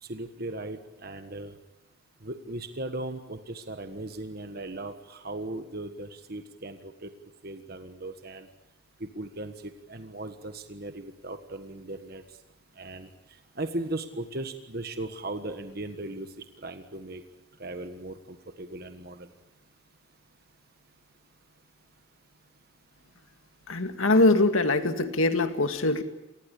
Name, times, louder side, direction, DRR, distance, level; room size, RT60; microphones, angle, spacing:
voice 1, 0.0-1.5 2.2-7.1 7.4-8.5 9.0-12.2 12.8-13.1 13.5-17.2 17.6-19.3, right 2 dB, 45° right, 8 dB, 1.5 m, -37 dB
voice 2, 23.7-26.0, left 2 dB, 80° left, 8 dB, 2.1 m, -23 dB
28.0 x 19.5 x 8.5 m, 0.94 s
head